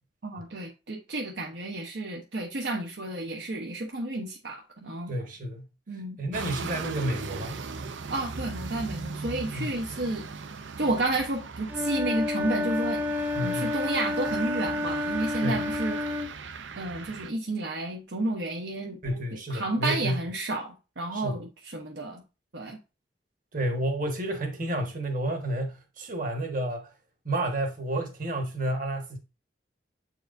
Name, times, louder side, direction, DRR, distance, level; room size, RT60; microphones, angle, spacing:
voice 1, 0.2-5.1 5.9-6.2 8.1-10.3 10.8-13.0 13.4-16.2 16.8-19.0 19.5-22.2 22.5-22.8, right 2 dB, 65° right, 0.9 m, -31 dB
voice 2, 5.1-5.7 6.2-7.6 9.5-9.7 13.4-13.7 15.4-15.7 19.0-20.2 21.1-21.4 23.5-26.9 27.2-29.2, right 1 dB, 45° right, 1.4 m, -30 dB
sound 1, 6.3-17.3, right 4 dB, 90° right, 0.6 m, -38 dB
Wind instrument woodwind instrument, 11.7-16.3, left 2 dB, 10° right, 0.5 m, -30 dB
7.9 x 4.7 x 2.6 m
head